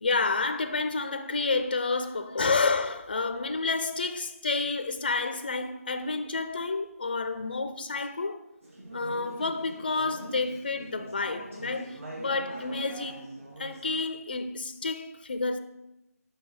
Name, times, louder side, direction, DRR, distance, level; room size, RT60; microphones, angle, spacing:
voice 1, 0.0-8.4 8.9-13.3 13.6-15.6, left 3 dB, 35° left, 0.4 m, -30 dB
Conversation / Chatter, 8.6-14.0, right 1 dB, 55° right, 2.9 m, -43 dB
7.9 x 5.9 x 4.7 m
figure-of-eight pair, 170°, 9 cm